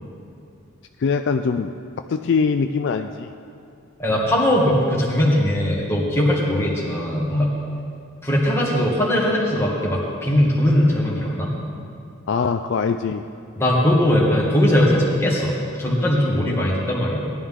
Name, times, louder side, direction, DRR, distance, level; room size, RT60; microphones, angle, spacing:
voice 1, 1.0-1.7 2.1-3.3 12.3-13.2, left 5 dB, 50° left, 7 dB, 0.3 m, -22 dB
voice 2, 4.0-7.5 8.2-11.5 13.6-15.5 15.8-17.3, left 1 dB, 10° left, -5 dB, 1.9 m, -20 dB
18.0 x 11.5 x 3.7 m, 2.5 s
head